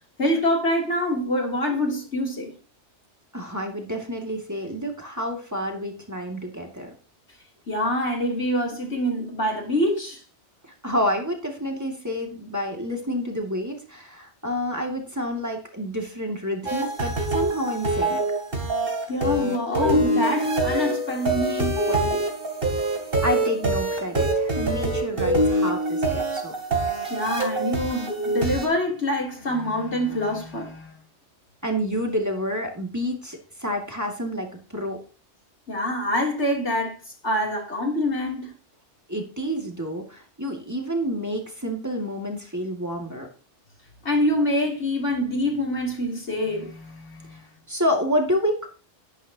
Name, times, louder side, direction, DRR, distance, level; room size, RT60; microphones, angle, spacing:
voice 1, 0.2-2.5 7.7-10.2 19.1-22.2 27.1-31.0 35.7-37.0 37.2-38.5 44.0-47.4, left 1 dB, 70° left, 3.5 m, -25 dB
voice 2, 3.3-6.9 10.6-18.2 23.2-26.5 31.6-35.0 39.1-43.3 47.7-48.7, equal, 15° right, 2.4 m, -29 dB
sound 1, 16.7-28.7, right 1 dB, 50° right, 3.4 m, -25 dB
12.0 x 11.5 x 2.9 m
omnidirectional pair, 1.2 m